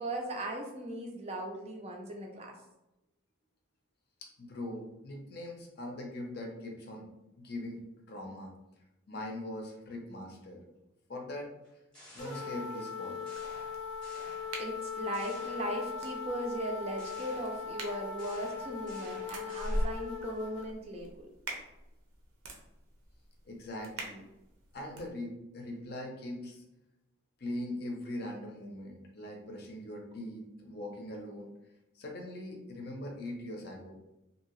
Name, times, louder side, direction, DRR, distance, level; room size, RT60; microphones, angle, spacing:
voice 1, 0.0-2.6 14.6-21.3, right 1 dB, 30° right, 1 dB, 0.4 m, -38 dB
voice 2, 4.2-7.1 7.4-8.5 9.1-10.6 11.1-11.6 12.1-13.2 23.4-24.2 24.7-26.6 27.4-31.5 31.9-33.9, left 1 dB, 45° left, 1 dB, 0.6 m, -41 dB
sound 1, 11.6-12.9 13.3-14.8 15.1-16.2 17.0-20.2, left 1 dB, 5° left, 0.8 m, -54 dB
sound 2, 12.2-20.7, left 6 dB, 90° left, 0.7 m, -40 dB
sound 3, 13.3-25.1, equal, 90° right, 0.6 m, -43 dB
2.7 x 2.7 x 3.0 m, 0.95 s
head